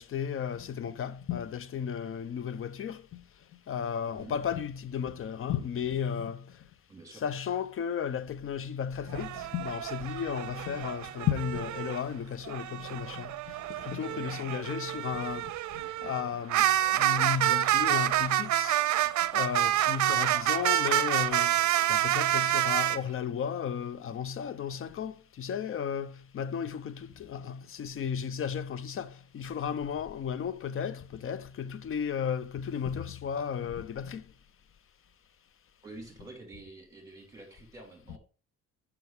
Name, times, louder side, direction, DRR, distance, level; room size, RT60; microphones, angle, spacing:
voice 1, 0.0-3.2 3.7-6.6 7.1-18.8 19.3-21.6 21.9-34.3, left 8 dB, 45° left, 0.6 m, -34 dB
voice 2, 6.9-7.2 14.0-14.3 35.8-38.2, right 2 dB, 10° right, 3.2 m, -48 dB
sound 1, 9.1-12.0 12.5-23.0, right 14 dB, 70° right, 0.6 m, -28 dB
7.7 x 6.0 x 3.4 m
cardioid pair, 90°, 30 cm